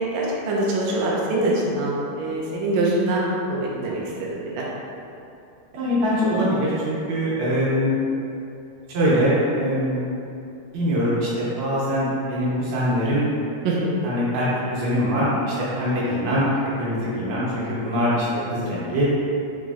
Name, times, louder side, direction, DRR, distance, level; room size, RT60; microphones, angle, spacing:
voice 1, 0.0-4.0 4.3-4.6 13.6-13.9, right 1 dB, 85° right, -4 dB, 1.5 m, -24 dB
voice 2, 5.7-8.0 8.9-10.0 10.7-13.3 14.0-14.5 14.7-16.5 16.8-19.1, equal, 70° right, -8 dB, 1.9 m, -23 dB
4.9 x 3.1 x 2.4 m, 2.6 s
omnidirectional pair, 3.6 m